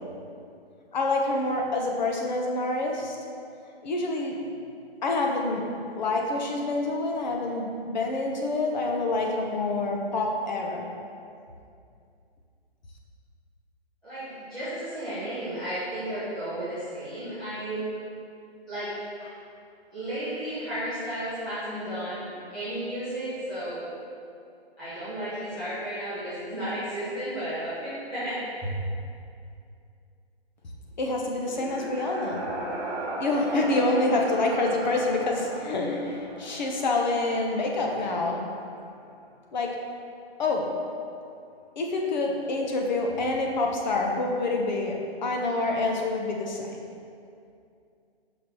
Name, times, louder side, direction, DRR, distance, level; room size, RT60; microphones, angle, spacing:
voice 1, 0.9-3.2 3.8-4.3 5.0-5.6 5.9-10.9 31.0-32.4 33.2-38.4 39.5-39.7 40.4-40.7 41.8-46.8, left 2 dB, 45° left, 0 dB, 0.9 m, -27 dB
voice 2, 14.0-17.8 18.7-18.9 19.2-19.3 19.9-23.8 24.8-28.7, right 1 dB, ahead, -18 dB, 0.4 m, -33 dB
sound 1, 31.3-39.0, right 2 dB, 40° right, 1.3 m, -37 dB
6.0 x 5.2 x 4.2 m, 2.5 s
hypercardioid pair, 155°, 32 cm